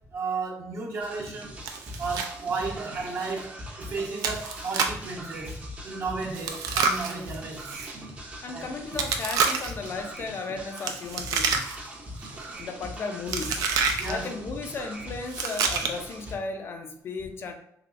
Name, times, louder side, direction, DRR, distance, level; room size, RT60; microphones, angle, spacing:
voice 1, 0.1-1.6 2.0-5.6 5.8-7.7 8.5-8.7 14.0-14.3, right 4 dB, 50° right, -1 dB, 0.8 m, -33 dB
sound 1, 1.0-16.3, equal, 20° right, 0.6 m, -41 dB
Chewing mastication, 1.7-2.3 2.6-2.7 3.2-3.3 4.2-5.1 6.3-7.9 8.9-9.9 10.8-11.9 12.2-12.6 13.3-14.1 15.3-16.1, right 5 dB, 85° right, 0.4 m, -28 dB
voice 2, 8.4-11.7 12.6-13.6 14.1-17.5, left 4 dB, 40° left, 5 dB, 0.4 m, -35 dB
3.3 x 2.9 x 2.4 m, 0.72 s
cardioid pair, 135°, 6 cm